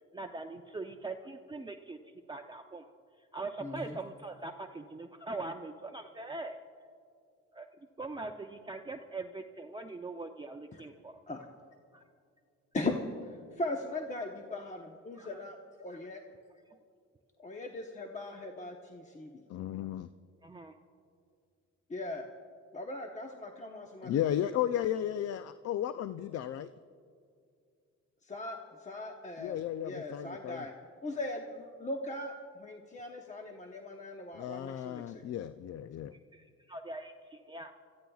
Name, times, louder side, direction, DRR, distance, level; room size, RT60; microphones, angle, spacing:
voice 1, 0.1-2.0 2.3-2.9 3.3-6.6 7.5-7.7 8.0-11.2 11.9-12.0 15.2-15.4 15.9-16.0 16.7-16.8 20.4-20.7 36.3-37.7, right 3 dB, 15° right, 4 dB, 0.6 m, -42 dB
voice 2, 3.6-4.0 10.7-10.8 11.3-11.4 12.7-13.0 13.3-16.2 17.4-19.3 21.9-22.3 22.7-24.3 28.2-29.6 29.8-30.7 31.0-35.2, left 2 dB, 25° left, 2 dB, 0.9 m, -39 dB
voice 3, 19.5-20.1 24.0-26.7 29.4-30.6 34.3-36.1, left 11 dB, 55° left, 12 dB, 0.4 m, -34 dB
29.0 x 14.5 x 2.4 m, 2.3 s
cardioid pair, 90°, 30 cm